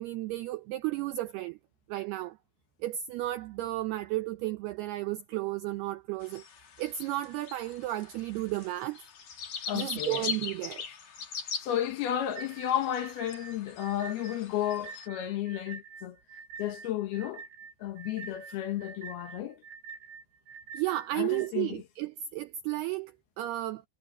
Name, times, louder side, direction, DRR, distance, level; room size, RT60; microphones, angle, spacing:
voice 1, 0.0-1.6 1.9-2.4 2.8-6.4 6.8-9.0 9.7-10.8 20.7-23.8, right 15 dB, 85° right, 2.3 m, -33 dB
sound 1, 6.2-15.1, left 6 dB, 45° left, 2.7 m, -41 dB
voice 2, 9.7-10.2 11.6-16.2 16.6-17.4 17.8-19.6 21.1-21.8, left 11 dB, 65° left, 2.9 m, -33 dB
sound 2, 12.4-21.5, right 6 dB, 65° right, 2.2 m, -46 dB
omnidirectional pair, 5.4 m